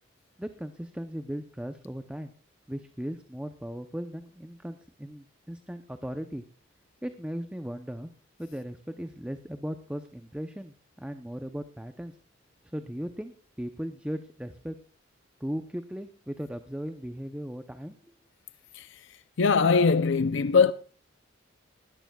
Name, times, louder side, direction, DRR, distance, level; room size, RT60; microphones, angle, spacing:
voice 1, 0.4-2.3 2.7-6.4 7.0-8.1 8.4-12.1 12.7-14.8 15.4-17.9, equal, 5° right, 0.6 m, -37 dB
voice 2, 19.4-20.7, left 5 dB, 70° left, 0.5 m, -21 dB
19.5 x 13.5 x 2.3 m
head